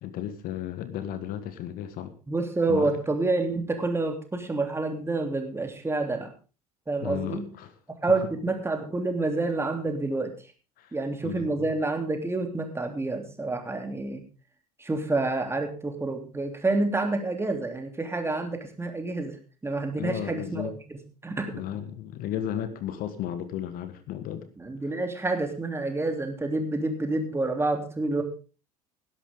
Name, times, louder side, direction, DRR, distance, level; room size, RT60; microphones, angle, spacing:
voice 1, 0.0-2.1 2.7-3.0 7.0-7.7 10.8-11.0 11.2-11.7 19.9-20.7 21.5-24.5, left 10 dB, 50° left, 12 dB, 1.5 m, -34 dB
voice 2, 2.3-6.3 6.9-7.5 8.0-10.3 10.9-14.2 14.8-19.4 19.6-21.5 24.6-28.2, right 2 dB, 15° right, 4 dB, 3.1 m, -28 dB
19.0 x 11.0 x 3.7 m, 0.35 s
figure-of-eight pair, 65°, 19 cm